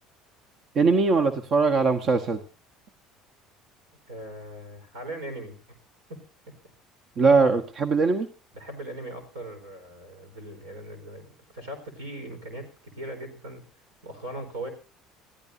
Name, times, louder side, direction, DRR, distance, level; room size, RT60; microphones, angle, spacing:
voice 1, 0.7-2.4 7.2-8.3, right 4 dB, 50° right, 6 dB, 1.3 m, -21 dB
voice 2, 4.1-5.6 6.1-6.2 8.5-13.7 14.0-14.7, right 1 dB, 85° right, 6 dB, 4.5 m, -39 dB
26.5 x 15.0 x 2.7 m, 0.33 s
hypercardioid pair, 70°, 0 cm